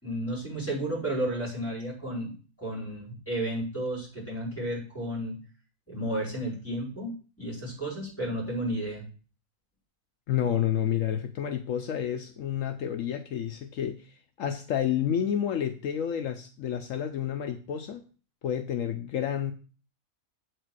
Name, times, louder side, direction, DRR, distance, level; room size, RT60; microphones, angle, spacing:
voice 1, 0.0-5.4 5.9-7.1 7.4-9.0, right 1 dB, 10° left, -6 dB, 4.9 m, -32 dB
voice 2, 10.3-18.0 18.4-19.5, left 9 dB, 70° left, 7 dB, 1.0 m, -30 dB
8.2 x 4.9 x 6.1 m, 0.38 s
omnidirectional pair, 1.5 m